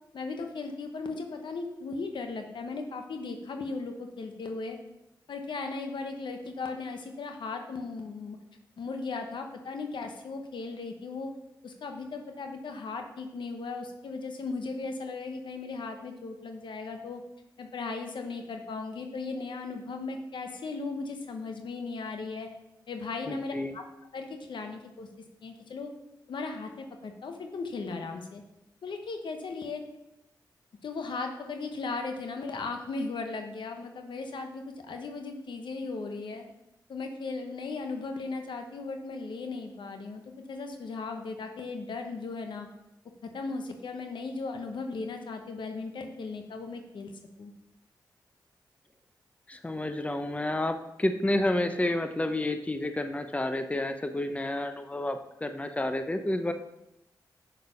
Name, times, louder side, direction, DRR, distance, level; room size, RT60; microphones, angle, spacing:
voice 1, 0.1-4.8 5.3-8.4 8.8-11.3 11.6-17.2 17.6-22.5 22.9-23.8 24.1-25.1 25.4-25.9 26.3-28.4 28.8-29.8 30.8-36.4 36.9-40.2 40.5-42.7 43.2-47.1 47.4-47.5, left 3 dB, 75° left, 5 dB, 1.1 m, -37 dB
voice 2, 23.3-23.8 49.5-56.5, left 1 dB, 15° left, 8 dB, 0.8 m, -30 dB
6.7 x 6.5 x 5.6 m, 0.89 s
cardioid pair, 45°, 8 cm